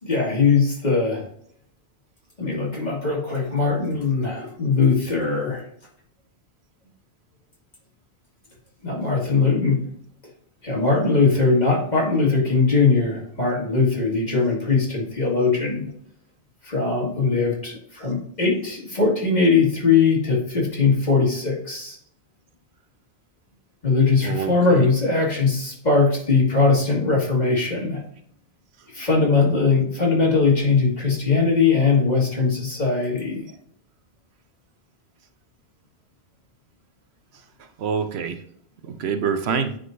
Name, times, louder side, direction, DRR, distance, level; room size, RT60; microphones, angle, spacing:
voice 1, 0.0-1.2 2.4-5.7 8.8-9.9 10.6-15.9 16.6-22.0 23.8-28.0 28.9-33.4, left 4 dB, 40° left, -3 dB, 2.1 m, -20 dB
voice 2, 24.2-24.9 37.8-38.4 38.8-39.8, right 6 dB, 75° right, 8 dB, 0.9 m, -26 dB
9.3 x 3.8 x 2.6 m, 0.65 s
omnidirectional pair, 1.1 m